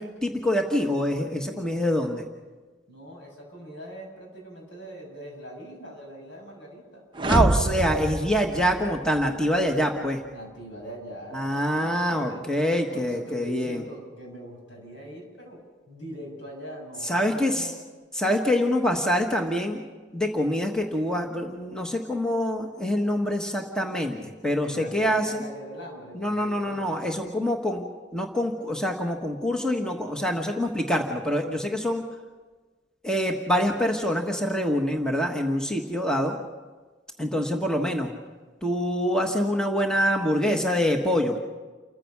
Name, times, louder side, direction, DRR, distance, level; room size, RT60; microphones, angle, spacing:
voice 1, 0.0-2.3 7.3-10.2 11.3-13.8 17.0-17.7 18.1-19.8 20.1-25.4 26.1-27.8 28.1-32.0 33.0-36.4 37.2-38.1 38.6-41.4, equal, 5° left, 2 dB, 1.4 m, -25 dB
voice 2, 2.9-7.0 10.3-12.5 12.9-15.6 15.9-17.8 24.6-27.1, equal, 75° left, 0 dB, 7.3 m, -42 dB
sound 1, 7.1-9.3, right 1 dB, 25° right, 0.7 m, -26 dB
29.0 x 15.0 x 6.0 m, 1.3 s
head